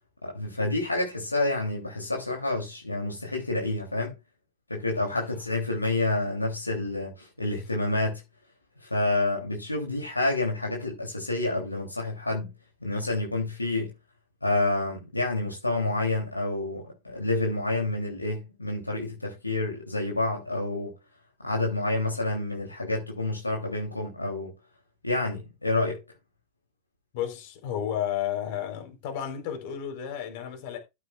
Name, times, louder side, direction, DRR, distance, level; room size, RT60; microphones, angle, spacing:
voice 1, 0.2-4.1 4.7-8.2 8.8-12.5 12.8-13.9 14.4-20.9 21.4-24.5 25.0-26.0, left 2 dB, 85° left, 3.1 m, -28 dB
voice 2, 27.1-30.8, left 10 dB, 50° left, 4.2 m, -32 dB
14.0 x 9.9 x 2.5 m
figure-of-eight pair, 90°, 0 cm